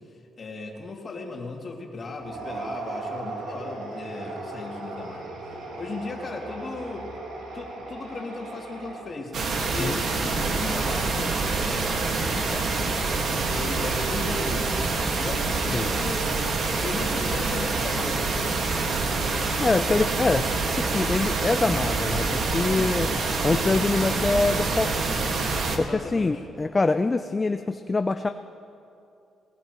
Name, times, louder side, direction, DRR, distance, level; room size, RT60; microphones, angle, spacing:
voice 1, 0.4-5.3 5.8-7.1 7.5-9.3 9.7-12.7 13.4-14.7 15.2-16.4 16.8-18.5 22.6-22.9 25.7-26.4, left 3 dB, 40° left, -1 dB, 2.5 m, -36 dB
sound 1, 2.2-9.4, right 2 dB, 90° right, 2.5 m, -37 dB
sound 2, 9.3-25.8, right 3 dB, 60° right, 1.7 m, -26 dB
voice 2, 19.6-20.5 20.8-23.1 23.4-25.1 25.7-28.3, left 3 dB, 25° left, 8 dB, 0.4 m, -25 dB
20.5 x 19.5 x 3.1 m, 2.7 s
cardioid pair, 90°, 0 cm